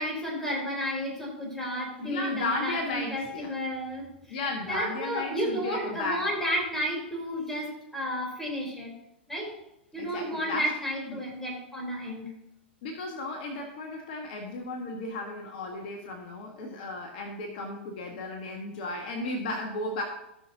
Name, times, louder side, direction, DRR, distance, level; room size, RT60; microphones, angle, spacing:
voice 1, 0.0-8.9 9.3-9.5 9.9-12.3, equal, 5° left, -3 dB, 4.0 m, -32 dB
voice 2, 1.7-3.5 4.3-6.3 10.0-10.7 11.1-11.2 12.8-20.0, left 2 dB, 50° left, 2 dB, 1.6 m, -34 dB
16.5 x 6.1 x 2.9 m, 0.85 s
figure-of-eight pair, 100°, 6 cm